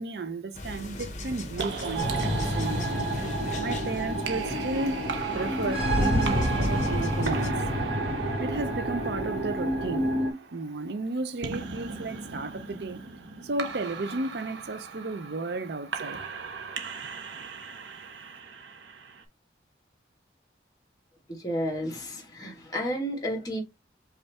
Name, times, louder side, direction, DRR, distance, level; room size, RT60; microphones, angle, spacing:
voice 1, 0.0-3.0 3.6-7.6 8.4-10.1 10.5-13.0 13.4-16.2, right 2 dB, 65° right, 0.5 m, -33 dB
sound 1, 0.5-7.5, left 2 dB, 40° left, 0.9 m, -39 dB
sound 2, 1.6-19.2, right 5 dB, 85° right, 0.8 m, -39 dB
sound 3, 2.0-10.3, equal, 30° right, 1.5 m, -28 dB
voice 2, 21.3-23.6, equal, 20° left, 1.4 m, -31 dB
5.3 x 2.5 x 3.3 m
head